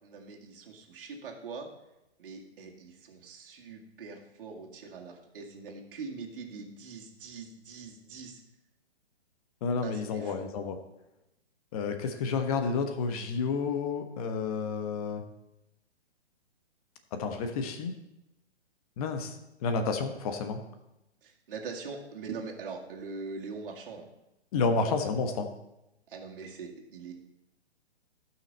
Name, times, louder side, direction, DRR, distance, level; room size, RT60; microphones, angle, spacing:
voice 1, 0.0-1.7 2.2-8.4 9.8-10.5 21.2-24.0 26.1-27.1, right 4 dB, 50° right, 0 dB, 2.3 m, -42 dB
voice 2, 9.6-10.8 11.7-15.2 17.1-17.9 19.0-19.4 19.6-20.6 24.5-25.5, left 4 dB, 35° left, 6 dB, 1.2 m, -30 dB
15.5 x 6.0 x 4.2 m, 0.91 s
figure-of-eight pair, 130°, 34 cm